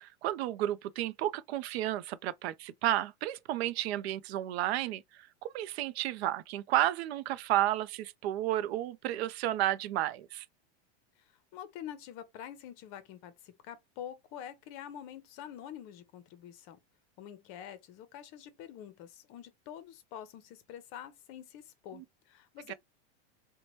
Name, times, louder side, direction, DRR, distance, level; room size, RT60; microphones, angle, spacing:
voice 1, 0.0-5.0 5.4-10.5 21.9-22.0 22.7-22.8, right 14 dB, 70° right, 0.5 m, -32 dB
voice 2, 11.2-16.8 17.2-22.7, left 10 dB, 40° left, 0.6 m, -47 dB
2.8 x 2.2 x 3.0 m
supercardioid pair, 150°, 33 cm